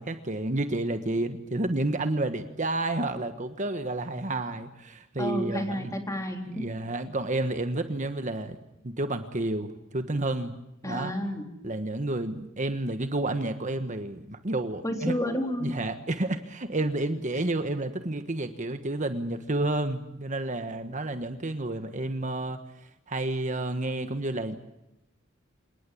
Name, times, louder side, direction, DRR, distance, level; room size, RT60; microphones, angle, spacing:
voice 1, 0.0-5.9 6.5-8.6 8.8-10.5 10.8-11.1 11.6-15.1 15.6-24.6, right 2 dB, 40° right, 8 dB, 1.3 m, -30 dB
voice 2, 5.2-6.7 10.8-11.5 14.8-15.7, equal, 15° left, 3 dB, 3.9 m, -30 dB
27.5 x 19.0 x 8.6 m, 0.88 s
head